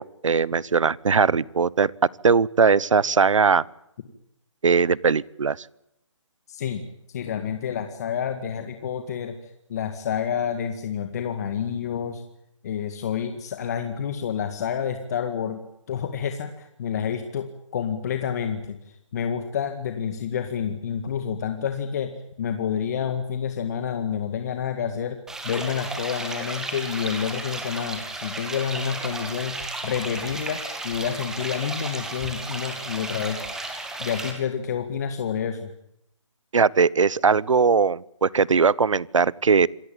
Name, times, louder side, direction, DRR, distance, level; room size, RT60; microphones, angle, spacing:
voice 1, 0.0-1.9 2.2-3.6 4.6-5.6 36.5-39.7, right 5 dB, 80° right, 24 dB, 1.0 m, -20 dB
voice 2, 6.5-6.8 7.1-12.2 12.6-15.6 15.9-33.4 34.0-35.7, left 8 dB, 30° left, 7 dB, 2.0 m, -29 dB
sound 1, 25.3-34.3, right 2 dB, 5° right, 2.1 m, -34 dB
27.5 x 16.5 x 9.0 m, 0.81 s
hypercardioid pair, 165°, 16 cm